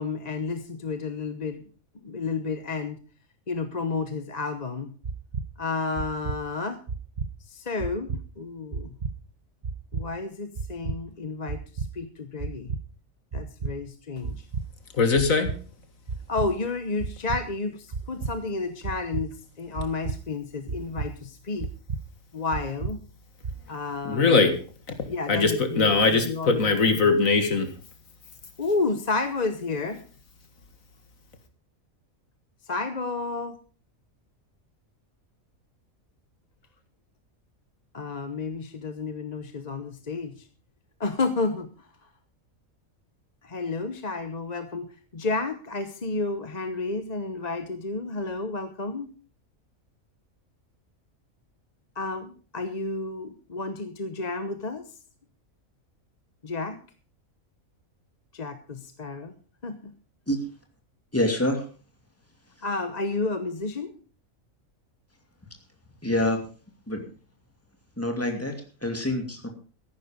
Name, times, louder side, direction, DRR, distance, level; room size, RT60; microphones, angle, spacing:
voice 1, 0.0-1.6 2.0-3.0 3.5-4.9 5.6-6.8 7.5-9.0 9.9-12.7 13.3-14.5 16.3-21.7 22.3-23.0 23.7-24.6 25.1-25.9 26.2-26.8 28.6-30.0 32.6-33.6 37.9-40.5 41.0-41.9 43.4-44.9 45.1-49.1 52.0-54.9 56.4-56.8 58.3-59.3 59.6-59.9 62.6-63.9, left 3 dB, 35° left, 1.0 m, -31 dB
sound 1, 5.0-5.5 6.0-6.4 6.9-7.3 7.8-8.2 8.7-9.1 9.6-10.0 10.6-11.0 11.5-11.9 12.4-12.8 13.3-13.7 14.2-14.7 15.2-15.6 16.1-16.5 17.0-17.4 17.9-18.3 18.8-19.3 19.8-20.2 20.7-21.1 21.6-22.0 22.5-22.9 23.4-23.6, right 5 dB, 40° right, 1.0 m, -31 dB
voice 2, 14.9-15.5 24.0-24.5 24.9-25.0 25.3-27.7, left 4 dB, 75° left, 2.1 m, -21 dB
voice 3, 61.1-61.6 66.0-66.4 66.9-67.0 68.0-68.5 68.8-69.5, left 1 dB, 10° left, 2.6 m, -26 dB
14.0 x 11.0 x 5.2 m
omnidirectional pair, 1.4 m